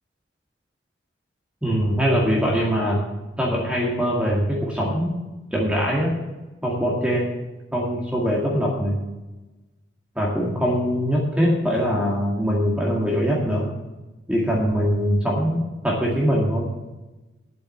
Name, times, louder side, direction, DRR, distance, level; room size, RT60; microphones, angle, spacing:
voice 1, 1.6-3.0 3.4-5.1 5.5-6.1 6.6-7.3 7.7-9.0 10.2-13.7 14.3-16.7, equal, 5° right, -4 dB, 2.1 m, -22 dB
9.8 x 7.7 x 8.0 m, 1.1 s
head